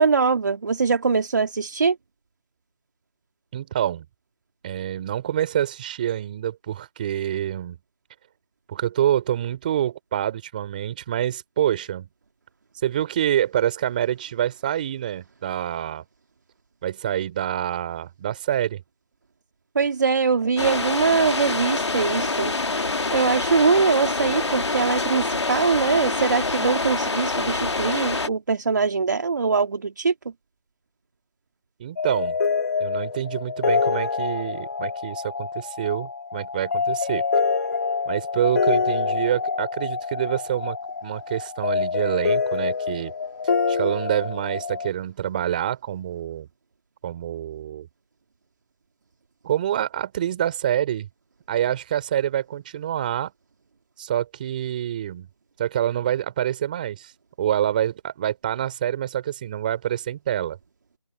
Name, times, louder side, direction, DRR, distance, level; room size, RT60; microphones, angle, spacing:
voice 1, 0.0-2.0 19.8-22.5 23.1-30.1, right 5 dB, 40° right, 2.1 m, -22 dB
voice 2, 3.5-4.0 4.6-7.8 8.7-12.1 12.8-16.0 16.8-18.8 31.8-32.4 32.8-37.2 38.1-43.1 43.7-46.5 47.0-47.9 49.4-51.1 51.5-53.3 54.0-55.3 55.6-57.1 57.4-60.6, right 11 dB, 20° right, 2.9 m, -26 dB
sound 1, 20.6-28.3, left 3 dB, 70° left, 2.2 m, -26 dB
sound 2, 32.0-44.9, left 5 dB, 35° left, 2.3 m, -26 dB
open air
figure-of-eight pair, 170°, 15 cm